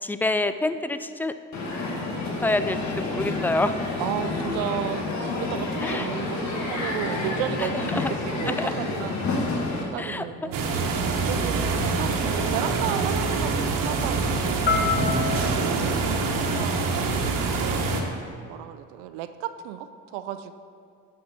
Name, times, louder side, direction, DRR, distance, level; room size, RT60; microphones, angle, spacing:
voice 1, 0.0-1.3 2.4-3.7 5.8-6.1 7.6-8.1 8.5-8.7 10.0-10.3 14.5-15.6, left 2 dB, 5° left, 11 dB, 0.3 m, -28 dB
Crowd, 1.5-9.8, left 2 dB, 55° left, 1.6 m, -29 dB
voice 2, 4.0-9.3 9.6-15.8 16.4-16.9 17.2-18.2 18.4-20.5, right 10 dB, 90° right, 11 dB, 0.5 m, -34 dB
sound 1, 10.2-15.1, left 6 dB, 30° left, 1.0 m, -32 dB
sound 2, 10.5-18.0, right 4 dB, 70° right, 1.2 m, -25 dB
9.8 x 6.5 x 4.2 m, 2.3 s
supercardioid pair, 75°, 34 cm